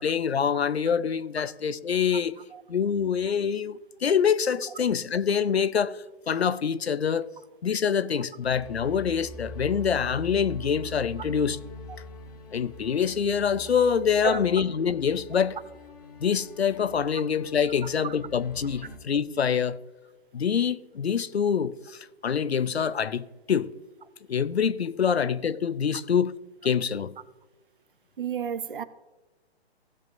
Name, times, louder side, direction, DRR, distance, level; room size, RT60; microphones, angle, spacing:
voice 1, 0.0-2.3 2.7-7.3 7.6-11.6 12.5-15.6 16.2-19.8 20.3-23.7 24.3-26.3 26.6-27.1, left 7 dB, 75° left, 0.6 m, -25 dB
sound 1, 8.4-19.0, left 1 dB, 35° left, 1.3 m, -44 dB
voice 2, 28.2-28.8, right 8 dB, 55° right, 0.7 m, -30 dB
16.5 x 7.3 x 2.5 m
figure-of-eight pair, 130°, 32 cm